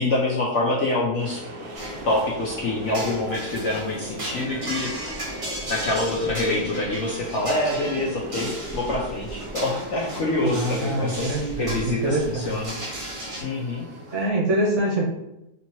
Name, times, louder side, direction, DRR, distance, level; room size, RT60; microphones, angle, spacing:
voice 1, 0.0-1.4 2.0-4.9 5.7-12.8 13.4-13.8, left 2 dB, 65° left, -4 dB, 0.7 m, -26 dB
sound 1, 1.2-14.3, right 1 dB, 85° right, 1.3 m, -38 dB
sound 2, 1.7-13.4, right 1 dB, 30° right, 0.7 m, -36 dB
voice 2, 10.4-12.5 14.1-15.0, right 1 dB, 55° right, -4 dB, 1.0 m, -25 dB
3.5 x 2.8 x 2.9 m, 0.91 s
omnidirectional pair, 1.7 m